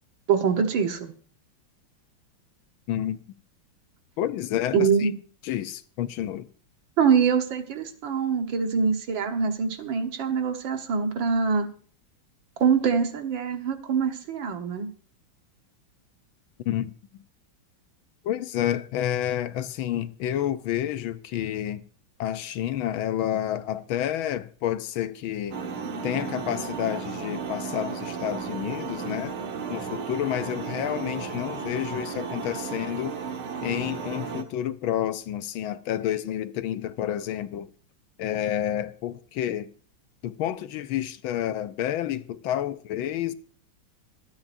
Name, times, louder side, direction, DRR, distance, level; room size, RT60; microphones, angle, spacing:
voice 1, 0.3-1.1 4.7-5.1 7.0-11.7 12.6-14.9, right 6 dB, 70° right, 2.0 m, -24 dB
voice 2, 4.2-5.1 5.4-6.5 16.7-16.9 18.2-21.8 22.2-25.6 26.0-29.3 29.7-33.2 33.6-37.7 38.2-39.7 40.2-43.3, left 11 dB, 80° left, 1.5 m, -29 dB
sound 1, 25.5-34.4, right 5 dB, 85° right, 2.1 m, -34 dB
25.5 x 8.8 x 2.6 m
omnidirectional pair, 2.2 m